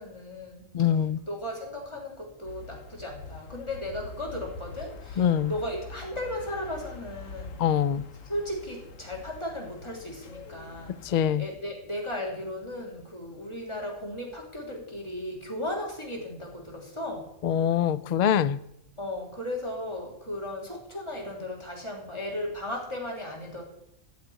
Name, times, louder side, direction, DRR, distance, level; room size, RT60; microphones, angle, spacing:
voice 1, 0.0-0.7 1.3-7.5 8.2-17.3 19.0-23.6, left 1 dB, 20° left, -1 dB, 3.1 m, -36 dB
voice 2, 0.7-1.2 5.2-5.5 7.6-8.0 11.0-11.4 17.4-18.6, left 9 dB, 65° left, 17 dB, 0.4 m, -24 dB
sound 1, 2.4-11.3, left 4 dB, 85° left, 1.4 m, -45 dB
14.0 x 5.2 x 9.2 m, 0.79 s
omnidirectional pair, 1.3 m